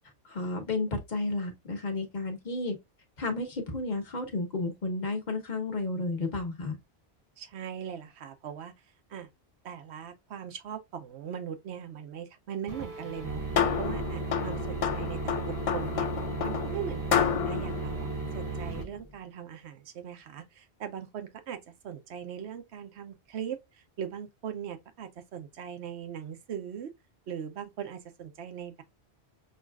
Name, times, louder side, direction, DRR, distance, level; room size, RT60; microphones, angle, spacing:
voice 1, 0.3-2.8 3.2-6.8, left 2 dB, 45° left, 1.3 m, -32 dB
voice 2, 7.4-8.7 9.1-9.3 9.6-13.4 13.8-16.1 16.4-26.9 27.3-28.8, right 8 dB, 85° right, 1.0 m, -40 dB
sound 1, 12.7-18.8, right 4 dB, 20° right, 0.7 m, -36 dB
sound 2, 13.1-19.0, left 8 dB, 60° left, 0.3 m, -31 dB
6.3 x 2.4 x 2.3 m
omnidirectional pair, 1.1 m